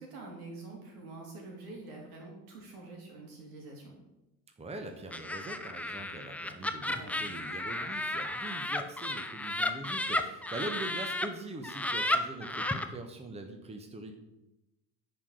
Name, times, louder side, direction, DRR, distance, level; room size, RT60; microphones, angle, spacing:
voice 1, 0.0-3.9 6.9-7.2, right 2 dB, 65° right, 0 dB, 3.1 m, -46 dB
voice 2, 4.6-14.1, right 2 dB, 15° right, 5 dB, 1.2 m, -42 dB
Laughter, 5.1-11.3 11.6-12.9, left 1 dB, 5° left, 0.7 m, -33 dB
10.5 x 5.0 x 6.5 m, 0.95 s
figure-of-eight pair, 65°, 47 cm